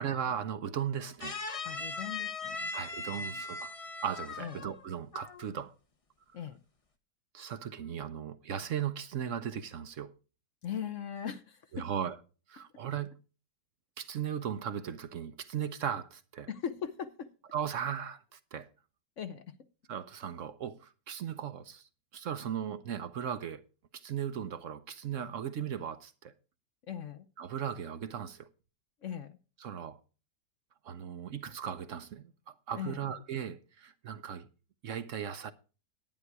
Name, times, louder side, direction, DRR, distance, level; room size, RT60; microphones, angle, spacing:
voice 1, 0.0-1.4 2.7-3.7 4.0-5.7 7.3-10.1 11.7-12.2 12.5-13.2 14.0-16.5 17.5-18.7 19.9-23.6 23.9-26.3 27.4-28.5 29.6-30.0 30.8-34.5 34.8-35.5, right 8 dB, 60° right, 0.9 m, -37 dB
sound 1, 1.2-4.8 5.1-5.5, left 3 dB, 30° left, 0.6 m, -39 dB
voice 2, 1.6-2.7 3.2-3.4 4.4-4.7 6.3-6.6 10.6-11.9 16.5-17.3 19.2-19.5 26.9-27.3 29.0-29.4 32.8-33.0, left 8 dB, 55° left, 0.9 m, -39 dB
11.0 x 9.6 x 4.7 m
omnidirectional pair, 1.9 m